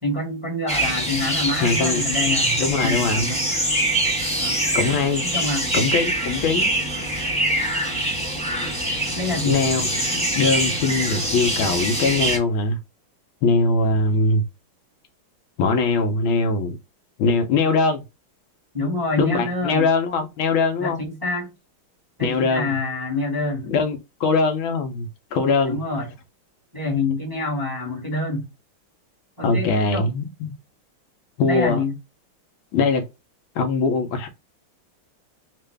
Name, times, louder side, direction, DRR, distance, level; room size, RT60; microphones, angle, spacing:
voice 1, 0.0-3.4 4.4-4.6 5.2-5.7 9.1-9.6 18.7-19.9 20.8-21.5 22.2-23.7 25.7-26.1 26.7-28.5 29.4-30.1 31.4-32.0, left 2 dB, 10° right, 1.2 m, -26 dB
sound 1, 0.7-12.4, right 1 dB, 5° left, 0.7 m, -24 dB
voice 2, 1.6-3.3 4.7-5.2 5.7-6.7 9.5-12.8 13.4-14.4 15.6-16.8 17.2-18.0 19.2-21.0 22.2-22.7 23.7-25.8 29.4-30.5 31.4-31.8 32.7-33.1 33.5-34.3, left 4 dB, 75° left, 1.5 m, -22 dB
3.7 x 2.5 x 3.3 m
omnidirectional pair, 2.3 m